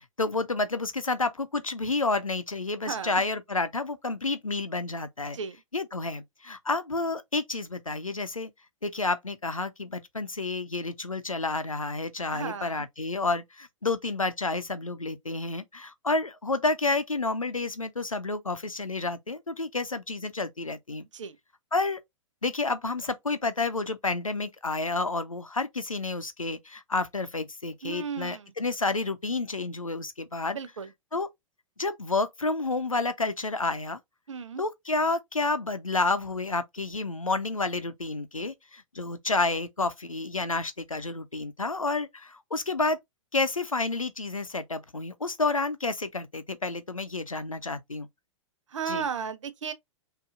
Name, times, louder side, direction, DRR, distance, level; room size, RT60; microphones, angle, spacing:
voice 1, 0.2-5.4 5.7-8.5 8.8-21.0 21.7-22.0 22.4-30.6 31.1-31.3 31.8-34.0 34.6-43.0 43.3-48.1 48.9-49.1, left 3 dB, 90° left, 0.7 m, -30 dB
voice 2, 2.9-3.2 5.3-5.6 12.3-12.8 21.1-21.4 27.8-28.5 30.5-30.9 34.3-34.6 48.7-49.7, right 6 dB, 65° right, 0.8 m, -34 dB
6.1 x 2.8 x 2.4 m
figure-of-eight pair, 105°, 17 cm